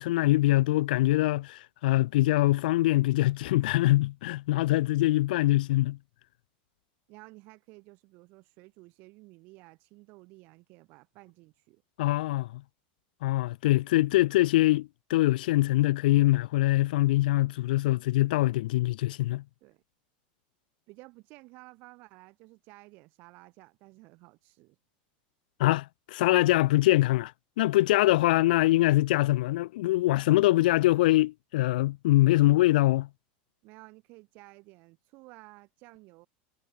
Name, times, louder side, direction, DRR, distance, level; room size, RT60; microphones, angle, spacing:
voice 1, 0.0-6.0 12.0-12.5 13.2-19.4 25.6-27.3 27.6-33.1, left 17 dB, 65° left, 0.5 m, -23 dB
voice 2, 7.1-11.8 19.6-19.8 20.9-24.8 33.6-36.3, right 24 dB, 40° right, 3.4 m, -53 dB
supercardioid pair, 170°, 5 cm